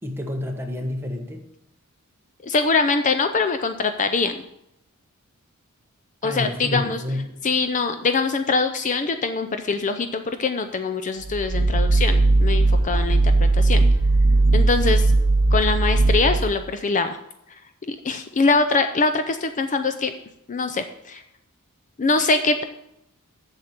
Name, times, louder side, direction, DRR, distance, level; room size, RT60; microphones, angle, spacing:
voice 1, 0.0-1.4 6.2-7.4, left 1 dB, 10° right, 2 dB, 1.2 m, -29 dB
voice 2, 2.4-4.4 6.2-7.0 7.4-13.2 13.5-13.8 14.5-15.1 15.5-17.2 17.8-20.1 20.5-21.2 22.0-22.6, left 4 dB, 35° left, 8 dB, 0.5 m, -23 dB
sound 1, 11.2-16.7, right 2 dB, 60° right, 0.7 m, -18 dB
7.7 x 7.3 x 6.6 m, 0.80 s
head